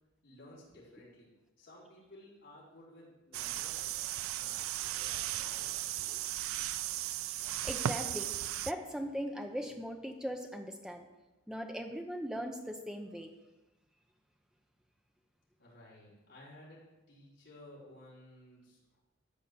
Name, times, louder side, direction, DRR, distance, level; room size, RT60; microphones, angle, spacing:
voice 1, 0.2-1.3 1.6-3.9 4.4-6.4 15.6-19.0, left 1 dB, 50° left, -8 dB, 4.9 m, -56 dB
sound 1, 3.3-8.7, right 12 dB, 75° right, 0.4 m, -36 dB
voice 2, 7.6-8.3 8.6-11.1 11.5-13.3, equal, 5° right, 4 dB, 0.8 m, -39 dB
13.5 x 5.0 x 8.4 m, 1.1 s
head